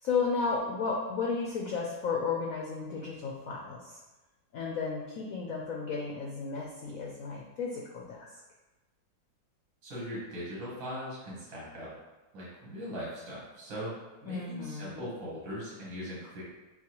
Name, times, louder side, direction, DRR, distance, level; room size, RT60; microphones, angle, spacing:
voice 1, 0.0-4.0 4.5-8.4 14.3-15.1, left 5 dB, 70° left, -2 dB, 0.8 m, -33 dB
voice 2, 9.8-11.9 12.3-13.9 14.2-16.4, equal, 80° right, -7 dB, 2.2 m, -40 dB
6.8 x 2.3 x 2.9 m, 1.1 s
omnidirectional pair, 2.1 m